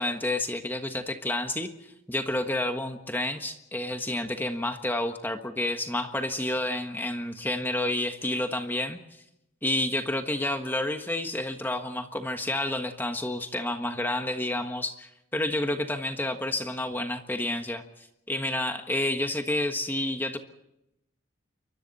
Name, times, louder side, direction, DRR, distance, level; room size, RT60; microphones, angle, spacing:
voice 1, 0.0-9.0 9.6-17.8 18.3-20.4, left 1 dB, 10° left, 5 dB, 1.4 m, -30 dB
29.0 x 24.5 x 4.2 m, 0.85 s
head